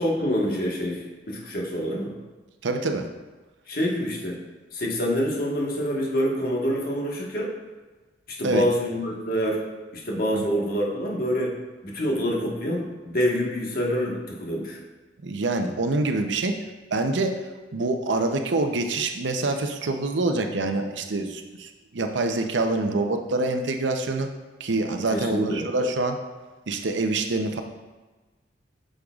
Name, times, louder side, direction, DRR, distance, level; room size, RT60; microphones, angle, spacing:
voice 1, 0.0-2.1 3.7-4.4 4.7-7.5 8.3-9.6 9.9-11.5 11.8-14.8 25.1-25.7, equal, 55° left, -2 dB, 1.3 m, -26 dB
voice 2, 2.6-3.1 8.4-8.6 10.3-10.5 15.2-16.6 16.9-17.4 17.7-24.3 24.6-26.2 26.7-27.6, right 2 dB, 80° right, 5 dB, 0.7 m, -26 dB
8.6 x 6.6 x 2.4 m, 1.2 s
head